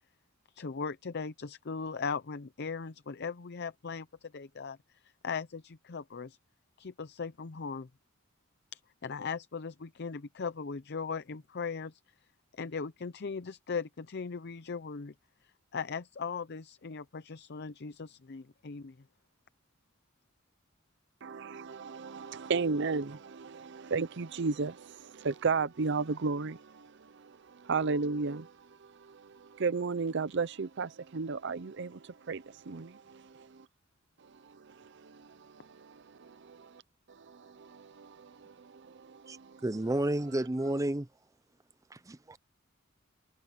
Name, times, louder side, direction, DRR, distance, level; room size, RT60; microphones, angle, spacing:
voice 1, 0.5-6.4 6.8-7.9 8.7-12.0 12.5-15.1 15.4-19.0, left 5 dB, 55° left, 0.6 m, -39 dB
voice 2, 21.2-33.6 34.4-36.8 37.1-39.6, right 4 dB, 60° right, 0.6 m, -35 dB
voice 3, 39.6-41.1 41.9-42.4, right 1 dB, 15° right, 0.5 m, -31 dB
head